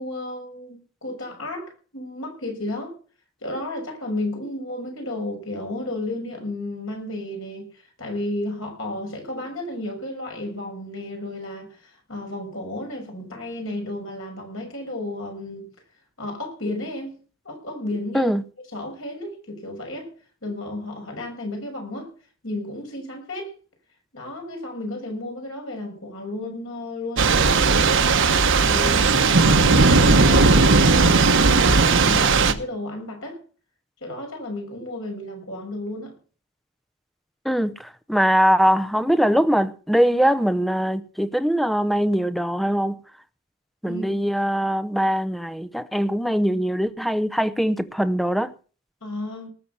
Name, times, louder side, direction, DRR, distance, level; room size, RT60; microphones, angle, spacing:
voice 1, 0.0-3.0 3.4-15.7 16.2-17.2 17.4-18.3 18.7-20.1 20.4-22.1 22.4-23.5 24.1-28.1 28.6-30.6 31.0-33.4 34.0-36.2 43.9-44.2 49.0-49.5, left 1 dB, 65° left, 6.4 m, -33 dB
Thunder / Rain, 27.2-32.5, right 4 dB, 60° right, 1.1 m, -17 dB
voice 2, 37.4-43.0 43.8-48.5, equal, ahead, 0.7 m, -22 dB
19.0 x 7.0 x 6.9 m
head